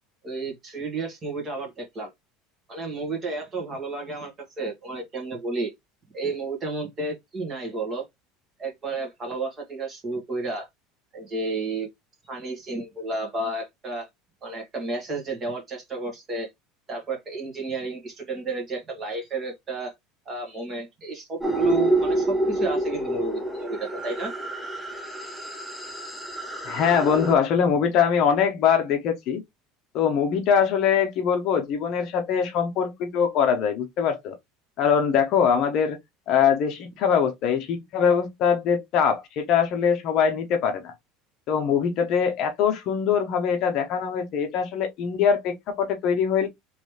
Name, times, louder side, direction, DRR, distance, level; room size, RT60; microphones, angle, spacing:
voice 1, 0.2-2.1 2.7-5.7 6.1-8.1 8.6-10.7 11.1-11.9 12.3-14.1 14.4-16.5 16.9-19.9 20.2-24.3, right 3 dB, 20° right, 1.7 m, -31 dB
sound 1, 21.4-27.3, right 1 dB, ahead, 0.7 m, -27 dB
voice 2, 26.6-29.4 29.9-34.4 34.8-36.0 36.3-40.9 41.5-46.5, left 7 dB, 40° left, 0.8 m, -22 dB
3.9 x 3.1 x 3.3 m
cardioid pair, 175°, 0 cm